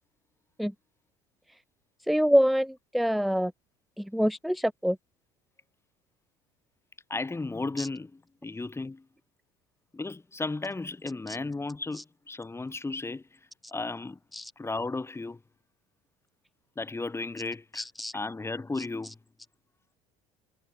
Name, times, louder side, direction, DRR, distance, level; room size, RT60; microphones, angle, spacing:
voice 1, 2.1-3.5 4.0-5.0 7.8-7.9 11.3-11.4 11.9-12.0 14.3-14.5 17.7-18.2 18.8-19.1, equal, ahead, 1.0 m, -26 dB
voice 2, 7.1-8.1 8.4-9.1 9.9-13.2 13.7-14.2 14.6-15.4 16.8-17.8 18.1-19.2, left 3 dB, 15° left, 4.1 m, -34 dB
hypercardioid pair, 70°, 15 cm